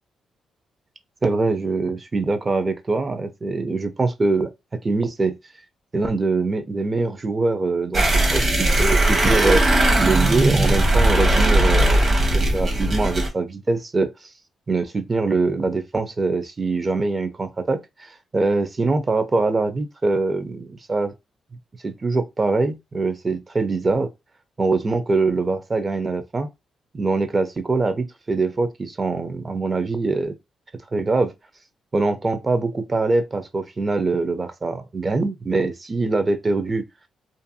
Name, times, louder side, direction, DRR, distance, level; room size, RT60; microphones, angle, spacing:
voice 1, 1.2-5.4 5.9-9.6 10.0-14.3 14.7-21.1 21.8-24.1 24.6-26.5 26.9-30.3 30.9-31.3 31.9-36.9, right 3 dB, 35° right, 0.4 m, -23 dB
sound 1, 7.9-13.3, right 1 dB, 55° right, 1.0 m, -18 dB
2.5 x 2.3 x 2.6 m
cardioid pair, 75°, 0 cm